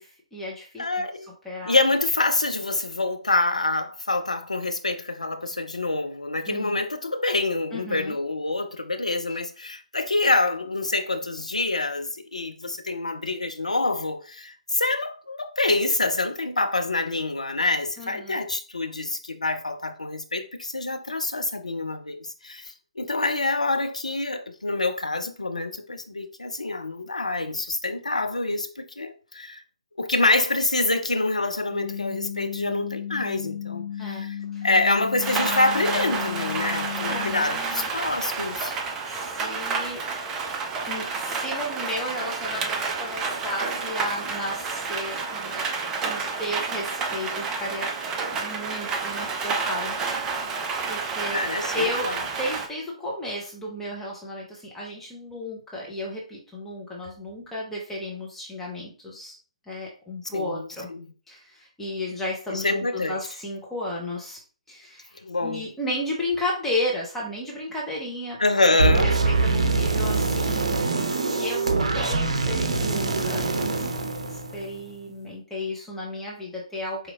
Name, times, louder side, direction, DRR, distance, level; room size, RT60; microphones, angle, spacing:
voice 1, 0.0-0.8 1.4-1.7 6.5-6.8 7.7-8.2 18.0-18.4 34.0-34.2 34.5-34.7 37.1-37.9 39.1-40.0 40.8-45.7 46.0-47.9 48.3-51.4 51.7-52.1 52.4-59.4 59.7-60.9 61.3-64.4 64.7-68.4 69.0-73.5 74.3-77.1, left 1 dB, 5° left, 0.8 m, -33 dB
voice 2, 0.8-1.3 1.7-29.6 30.0-38.7 51.3-52.2 60.3-61.1 62.5-63.2 65.2-65.7 68.4-69.1, left 2 dB, 80° left, 0.6 m, -26 dB
sound 1, 31.7-37.4, left 9 dB, 45° left, 1.4 m, -34 dB
Rain, 35.2-52.7, right 4 dB, 15° right, 0.4 m, -30 dB
sound 2, 68.8-74.9, right 3 dB, 65° right, 0.7 m, -24 dB
5.0 x 3.0 x 2.4 m
figure-of-eight pair, 135°, 4 cm